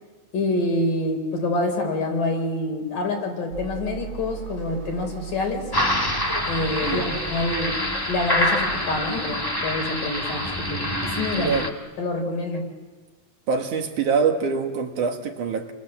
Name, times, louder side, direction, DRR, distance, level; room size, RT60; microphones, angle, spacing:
voice 1, 0.3-5.7 6.5-7.8 8.1-11.5 12.0-12.7, left 2 dB, 70° left, 3 dB, 6.0 m, -26 dB
sound 1, 3.5-11.6, right 10 dB, 85° right, 3.3 m, -40 dB
sound 2, 5.7-11.7, left 1 dB, 10° left, 1.0 m, -26 dB
voice 2, 13.5-15.7, right 5 dB, 65° right, 4 dB, 3.3 m, -24 dB
29.0 x 24.5 x 7.6 m, 1.4 s
omnidirectional pair, 4.0 m